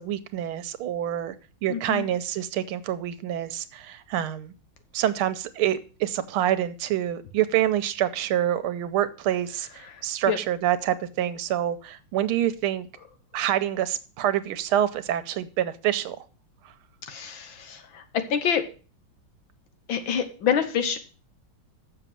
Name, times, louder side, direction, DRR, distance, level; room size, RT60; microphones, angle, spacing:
voice 1, 0.0-1.4 1.6-4.5 4.9-12.9 13.3-16.2, right 11 dB, 90° right, 1.6 m, -26 dB
voice 2, 1.7-2.0 10.3-10.4 17.1-18.0 18.3-18.6 19.9-21.0, left 7 dB, 70° left, 1.8 m, -26 dB
6.8 x 6.7 x 7.4 m
omnidirectional pair, 2.3 m